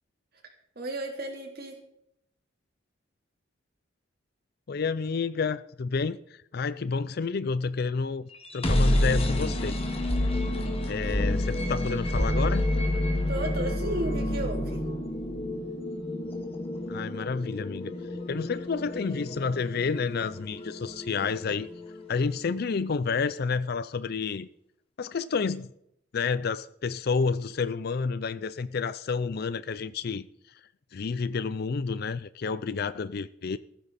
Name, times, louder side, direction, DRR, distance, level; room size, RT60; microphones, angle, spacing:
voice 1, 0.8-1.8 13.3-14.9, right 1 dB, 55° right, 3.7 m, -33 dB
voice 2, 4.7-9.8 10.9-12.7 16.9-18.0 18.3-21.7 22.1-24.5 25.0-25.7 26.1-30.3 30.9-33.6, left 5 dB, 55° left, 0.4 m, -30 dB
sound 1, 8.3-22.2, left 1 dB, 30° left, 2.1 m, -29 dB
15.0 x 14.0 x 4.2 m
head